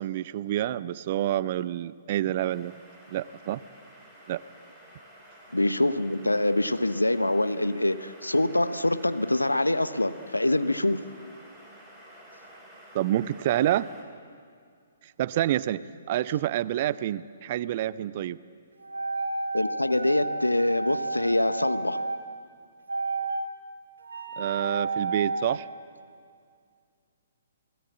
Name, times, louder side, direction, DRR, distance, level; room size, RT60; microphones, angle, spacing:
voice 1, 0.0-2.7 3.1-3.6 4.3-4.4 12.9-13.9 15.2-18.4 24.4-25.7, right 13 dB, 40° right, 19 dB, 0.6 m, -28 dB
sound 1, 2.5-14.0, right 1 dB, ahead, 4.3 m, -51 dB
voice 2, 5.5-11.0 19.5-22.0, left 1 dB, 80° left, 13 dB, 0.9 m, -25 dB
sound 2, 18.8-22.2 22.9-23.5 24.0-25.6, right 3 dB, 70° right, 2.5 m, -31 dB
30.0 x 19.5 x 7.5 m, 2.3 s
figure-of-eight pair, 125°, 0 cm